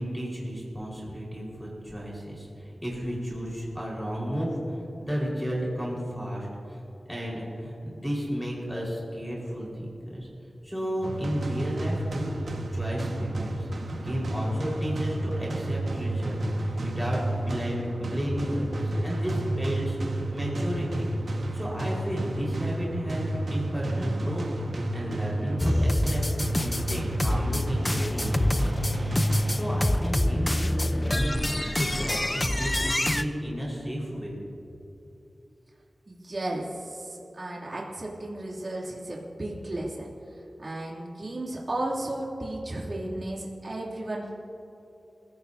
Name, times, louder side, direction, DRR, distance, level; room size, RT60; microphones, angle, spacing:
voice 1, 0.0-10.3 10.6-13.7 14.0-24.6 24.9-26.2 26.6-28.7 29.5-34.4, equal, ahead, -5 dB, 4.8 m, -33 dB
sound 1, 11.0-30.0, right 1 dB, 90° right, 1.6 m, -31 dB
sound 2, 25.6-33.2, left 1 dB, 20° left, 0.7 m, -26 dB
voice 2, 36.1-40.1 40.6-44.3, right 1 dB, 50° right, -4 dB, 3.0 m, -34 dB
29.0 x 16.5 x 2.8 m, 2.9 s
wide cardioid pair, 65°, 0 cm